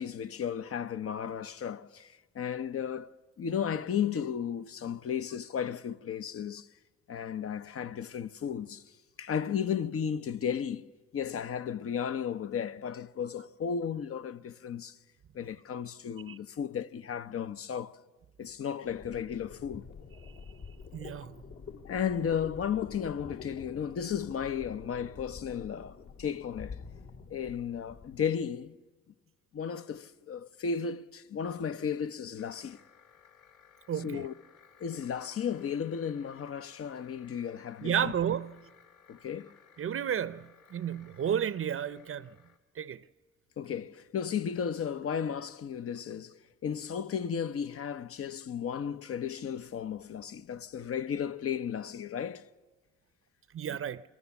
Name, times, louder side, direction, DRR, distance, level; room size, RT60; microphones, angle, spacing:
voice 1, 0.0-3.1 3.4-6.7 7.1-8.9 9.2-15.0 15.3-18.0 18.4-19.9 21.9-26.8 27.3-28.8 29.5-32.8 34.0-34.3 34.8-38.1 39.1-39.5 43.6-52.5, left 7 dB, 50° left, 0.8 m, -34 dB
sound 1, 18.8-28.2, left 5 dB, 65° left, 3.1 m, -47 dB
voice 2, 20.9-21.3 33.9-34.3 37.8-38.7 39.8-42.3 42.8-43.0 53.5-54.0, right 9 dB, 45° right, 0.7 m, -32 dB
sound 2, 32.4-42.6, left 7 dB, 80° left, 2.3 m, -60 dB
28.5 x 22.5 x 7.1 m
cardioid pair, 90°, 30 cm